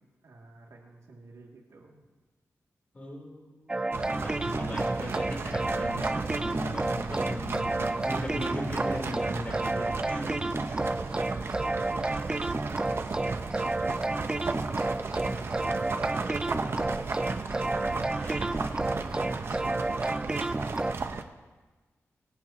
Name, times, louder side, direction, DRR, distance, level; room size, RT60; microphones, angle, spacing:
voice 1, 0.0-2.0 6.5-6.6 10.0-12.1 13.0-17.0 17.8-18.1 18.7-20.7 21.1-21.3, right 3 dB, 75° right, -1 dB, 2.5 m, -49 dB
voice 2, 2.9-3.8 4.1-7.7 8.0-10.3 17.6-18.5, left 1 dB, 25° left, -1 dB, 3.7 m, -39 dB
sound 1, 3.7-20.9, right 2 dB, 15° right, 0.3 m, -31 dB
sound 2, 3.9-21.2, right 4 dB, 45° right, 0.7 m, -35 dB
24.0 x 14.5 x 3.0 m, 1.3 s
wide cardioid pair, 165°, 5 cm